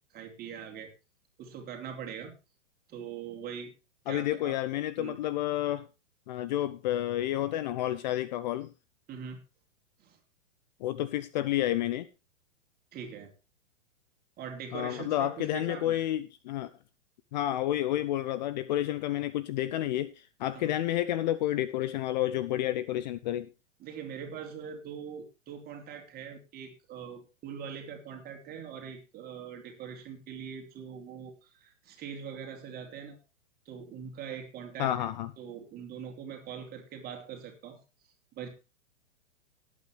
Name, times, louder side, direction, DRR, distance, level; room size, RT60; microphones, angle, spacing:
voice 1, 0.1-0.9 1.4-2.3 2.9-3.7 4.1-4.6 5.0-5.2 9.1-9.4 10.0-10.2 12.9-13.3 14.4-16.0 20.5-20.8 23.8-33.2 33.6-35.1 35.4-37.8 38.3-38.5, right 7 dB, 25° right, 4 dB, 3.0 m, -42 dB
voice 2, 4.1-5.9 6.3-8.7 10.8-12.1 14.7-16.7 17.3-23.5 34.8-35.3, left 13 dB, 35° left, 16 dB, 0.6 m, -30 dB
17.5 x 8.7 x 3.3 m, 0.29 s
figure-of-eight pair, 110°, 37 cm